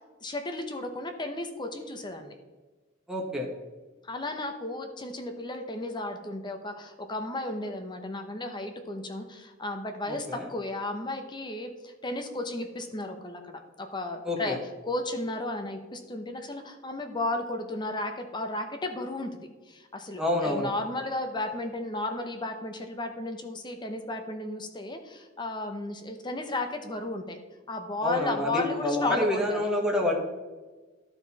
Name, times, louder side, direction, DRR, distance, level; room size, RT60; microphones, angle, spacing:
voice 1, 0.2-2.3 4.1-14.6 14.9-27.4 27.7-29.7, left 2 dB, 25° left, 5 dB, 0.8 m, -34 dB
voice 2, 3.1-3.5 10.1-10.5 14.2-14.6 20.2-20.7 28.0-30.1, left 1 dB, 5° right, -1 dB, 1.1 m, -28 dB
13.0 x 4.5 x 4.1 m, 1.3 s
head